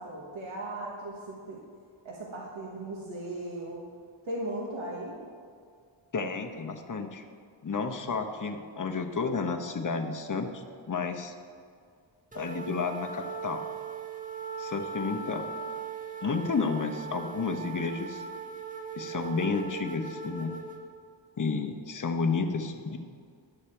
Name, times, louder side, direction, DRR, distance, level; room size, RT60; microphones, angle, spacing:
voice 1, 0.0-1.6 2.0-3.8 4.2-5.2, right 1 dB, 80° right, -3 dB, 1.3 m, -37 dB
voice 2, 6.1-7.2 7.6-11.3 12.3-13.7 14.6-15.4 16.2-18.2 19.0-20.5 21.4-23.0, left 4 dB, 40° left, 5 dB, 0.8 m, -31 dB
sound 1, 12.3-20.8, right 5 dB, 15° right, 1.1 m, -39 dB
11.0 x 6.7 x 4.4 m, 2.2 s
wide cardioid pair, 85°, 47 cm